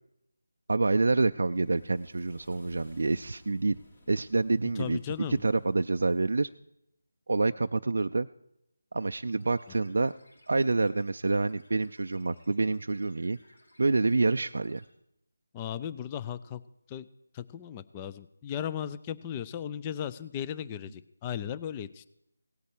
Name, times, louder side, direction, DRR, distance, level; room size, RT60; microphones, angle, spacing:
voice 1, 0.7-3.8 4.1-5.0 5.3-6.5 7.3-8.3 8.9-10.1 10.5-13.4 13.8-14.8, right 3 dB, 65° right, 8 dB, 0.4 m, -27 dB
sound 1, 1.3-6.6, left 1 dB, 45° left, 3.0 m, -57 dB
voice 2, 4.8-5.4 15.5-16.6 16.9-17.1 17.3-22.1, left 9 dB, 20° left, 14 dB, 0.4 m, -36 dB
sound 2, 9.3-14.9, left 1 dB, 75° left, 4.1 m, -62 dB
17.5 x 8.2 x 4.5 m, 0.79 s
figure-of-eight pair, 165°, 0 cm